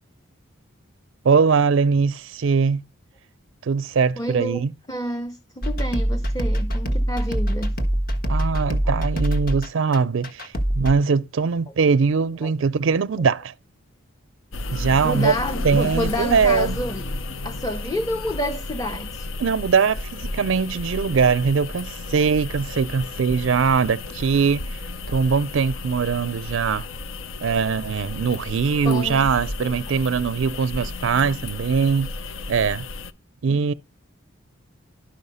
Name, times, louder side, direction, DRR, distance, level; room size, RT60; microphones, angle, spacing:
voice 1, 1.2-2.8 3.6-4.7 8.3-13.5 14.7-15.4 15.6-16.8 19.4-26.9 27.4-32.1 32.5-32.8 33.4-33.7, right 5 dB, 70° right, 0.4 m, -21 dB
voice 2, 4.2-4.6 4.9-7.7 8.8-8.9 12.4-12.5 15.0-17.0 17.4-19.3 28.8-29.2 29.6-29.8, left 1 dB, 20° left, 0.7 m, -29 dB
sound 1, 5.6-10.9, right 1 dB, 45° left, 1.4 m, -24 dB
sound 2, 14.5-33.1, left 2 dB, 75° left, 0.7 m, -33 dB
11.5 x 5.6 x 5.4 m
head